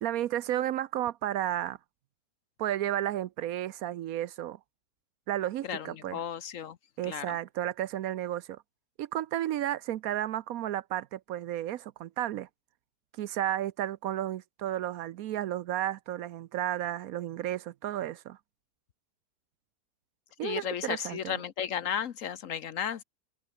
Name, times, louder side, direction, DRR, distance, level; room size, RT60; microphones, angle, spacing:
voice 1, 0.0-1.8 2.6-4.6 5.3-6.2 7.0-8.6 9.0-12.5 13.2-18.4 20.4-21.4, right 12 dB, 70° right, 1.0 m, -32 dB
voice 2, 5.6-6.8 7.0-7.4 20.4-23.0, left 8 dB, 60° left, 1.2 m, -34 dB
omnidirectional pair, 1.7 m